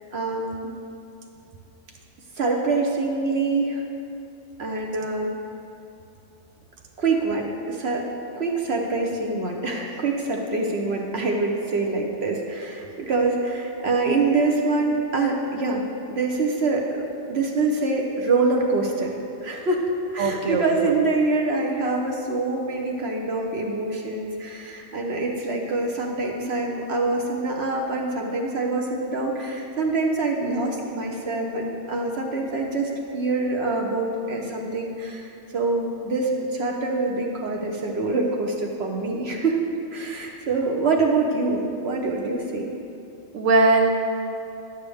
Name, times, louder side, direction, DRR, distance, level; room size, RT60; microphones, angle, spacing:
voice 1, 0.1-0.7 2.4-3.8 4.6-5.3 7.0-8.1 8.3-19.1 19.4-19.9 20.1-39.6 39.9-42.7, right 3 dB, 60° right, 0 dB, 1.0 m, -25 dB
voice 2, 20.2-20.9 43.3-43.9, right 3 dB, 85° right, 3 dB, 1.2 m, -20 dB
10.0 x 8.3 x 3.5 m, 2.7 s
omnidirectional pair, 1.3 m